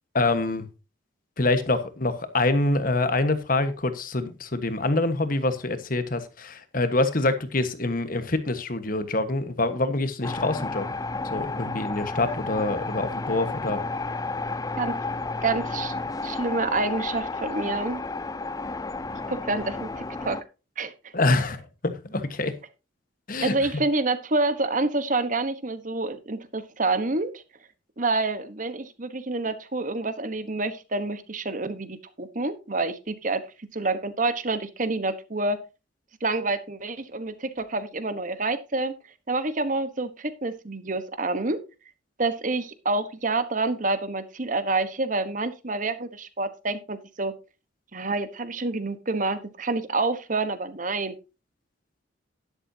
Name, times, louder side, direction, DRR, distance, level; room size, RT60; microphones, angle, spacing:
voice 1, 0.1-0.7 1.4-10.8 11.3-13.8 21.1-21.6 21.8-22.5 23.3-23.5, left 2 dB, 45° left, 1.4 m, -25 dB
sound 1, 10.2-20.4, left 3 dB, 20° left, 0.5 m, -32 dB
voice 2, 15.4-15.9 16.2-18.0 19.1-20.4 20.8-21.1 23.4-27.4 28.0-33.4 33.7-35.6 36.2-38.9 39.3-41.6 42.2-47.3 47.9-51.1, right 3 dB, 40° right, 1.2 m, -28 dB
11.5 x 11.0 x 2.8 m
head